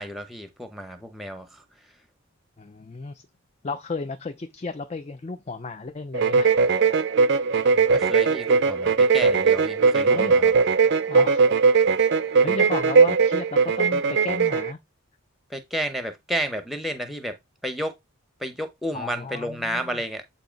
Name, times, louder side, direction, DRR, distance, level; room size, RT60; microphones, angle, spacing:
voice 1, 0.0-2.0 7.7-10.5 15.5-17.4 17.6-17.9 18.4-20.2, equal, ahead, 0.8 m, -32 dB
voice 2, 2.6-3.2 3.6-6.5 10.1-10.4 10.6-10.7 11.1-11.4 12.0-14.8 18.9-19.8, left 3 dB, 30° left, 0.4 m, -34 dB
sound 1, 6.1-14.7, right 5 dB, 55° right, 0.4 m, -19 dB
7.9 x 2.7 x 5.1 m
head